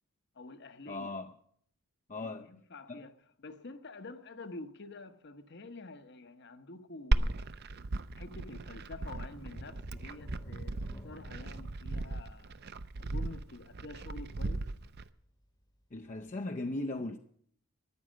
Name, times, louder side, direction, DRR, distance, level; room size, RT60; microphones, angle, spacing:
voice 1, 0.3-1.1 2.1-3.1 3.4-7.6 8.1-12.6 13.0-14.7, left 2 dB, 50° left, 1.0 m, -48 dB
voice 2, 0.9-1.3 2.1-2.5 2.9-3.0 15.9-17.2, left 2 dB, 35° left, 0.6 m, -38 dB
Glass, 7.1-15.1, right 2 dB, 45° right, 0.6 m, -36 dB
sound 1, 9.4-14.9 15.3-15.5 15.9-16.0, equal, 20° left, 1.0 m, -51 dB
14.0 x 10.5 x 7.4 m
head